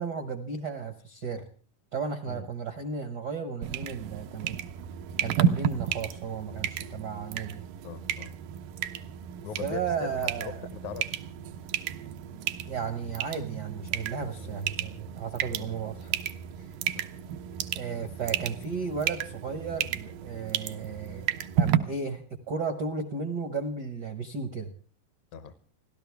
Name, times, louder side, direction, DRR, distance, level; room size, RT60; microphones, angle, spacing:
voice 1, 0.0-1.4 1.9-4.6 5.2-7.7 9.6-10.6 12.7-16.2 17.7-24.7, right 5 dB, 60° right, 8 dB, 1.0 m, -34 dB
sound 1, 3.6-21.8, right 10 dB, 90° right, 2.6 m, -32 dB
voice 2, 7.8-8.3 9.4-10.1 10.4-11.2 14.4-14.5 15.6-15.7 25.3-25.5, left 7 dB, 70° left, 12 dB, 2.2 m, -40 dB
30.0 x 12.5 x 3.5 m, 0.41 s
omnidirectional pair, 3.8 m